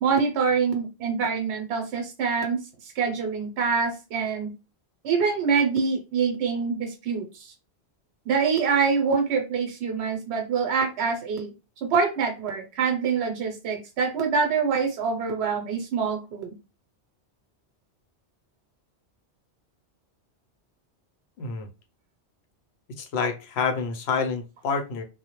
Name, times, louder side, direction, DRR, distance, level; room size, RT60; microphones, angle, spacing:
voice 1, 0.0-4.5 5.0-7.5 8.3-11.5 11.8-16.5, right 5 dB, 75° right, 3 dB, 0.9 m, -25 dB
voice 2, 23.0-25.0, left 5 dB, 75° left, 5 dB, 0.8 m, -28 dB
2.1 x 2.0 x 2.9 m, 0.29 s
omnidirectional pair, 1.1 m